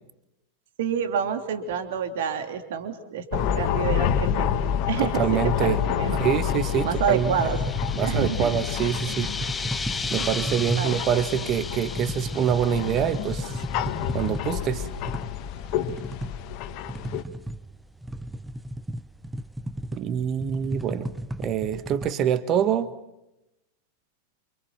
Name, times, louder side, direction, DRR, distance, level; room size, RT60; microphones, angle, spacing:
voice 1, 0.8-4.5 4.9-6.2 6.8-7.6 8.1-8.5 10.2-10.9, right 7 dB, 55° right, 7 dB, 3.2 m, -28 dB
sound 1, 3.3-17.2, left 9 dB, 40° left, 1.8 m, -29 dB
voice 2, 5.0-5.8 6.2-7.3 7.9-9.3 10.1-13.6 14.1-14.9 19.9-21.1 21.4-22.9, right 9 dB, 35° right, 13 dB, 1.6 m, -25 dB
sound 2, 6.0-14.4, left 4 dB, 15° left, 0.9 m, -36 dB
sound 3, 7.1-22.1, equal, 5° right, 0.9 m, -35 dB
28.5 x 27.0 x 5.9 m, 0.89 s
figure-of-eight pair, 90°, 0 cm